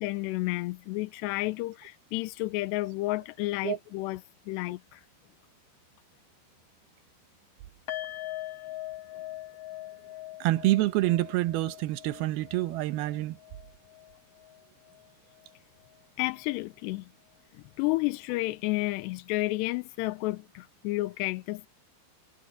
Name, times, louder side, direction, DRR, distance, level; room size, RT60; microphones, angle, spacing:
voice 1, 0.0-4.2 4.5-5.0 16.2-17.1 17.8-21.7, left 20 dB, 85° left, 2.5 m, -31 dB
sound 1, 7.9-15.1 15.3-15.5 15.9-16.0, left 15 dB, 30° left, 7.7 m, -42 dB
voice 2, 10.4-13.4, right 17 dB, 90° right, 2.1 m, -27 dB
omnidirectional pair, 5.6 m